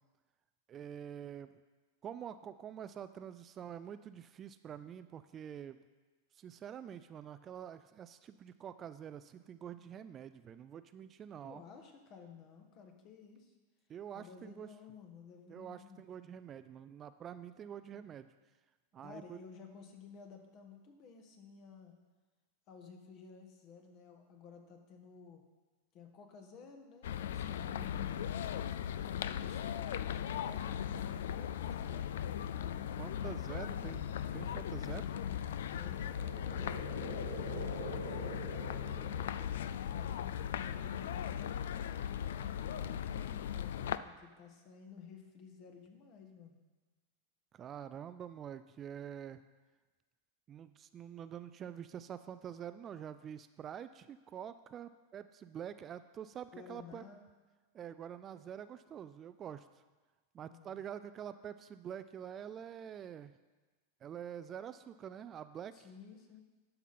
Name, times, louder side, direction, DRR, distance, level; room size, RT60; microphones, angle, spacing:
voice 1, 0.7-1.5 2.0-5.8 6.3-11.6 13.9-14.7 15.5-18.3 18.9-19.4 33.0-34.1 34.3-35.1 47.5-49.4 50.5-57.0 57.7-59.7 60.3-63.3 64.0-65.9, right 9 dB, 30° right, 12 dB, 0.3 m, -46 dB
voice 2, 11.4-13.5 14.1-16.1 19.0-21.9 22.7-25.4 25.9-32.1 32.5-34.0 35.0-37.1 37.3-39.3 39.9-46.6 56.5-57.3 60.5-60.8 65.7-66.4, left 5 dB, 45° left, 4 dB, 1.5 m, -54 dB
sound 1, 27.0-44.0, left 9 dB, 75° left, 0.3 m, -38 dB
sound 2, 35.6-39.8, right 4 dB, 80° right, 1.1 m, -46 dB
11.5 x 5.5 x 4.2 m, 1.3 s
hypercardioid pair, 110°, 0 cm